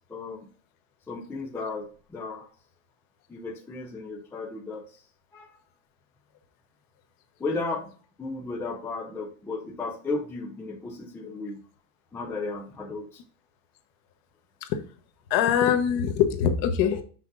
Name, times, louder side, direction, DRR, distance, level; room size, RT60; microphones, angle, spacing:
voice 1, 0.1-0.5 1.1-2.5 3.3-5.0 5.3-5.6 7.4-7.9 8.2-11.6 12.1-13.2, left 3 dB, 5° left, -1 dB, 0.4 m, -34 dB
voice 2, 15.3-17.0, left 8 dB, 45° left, 8 dB, 1.1 m, -23 dB
6.0 x 5.8 x 3.9 m, 0.42 s
supercardioid pair, 150°, 46 cm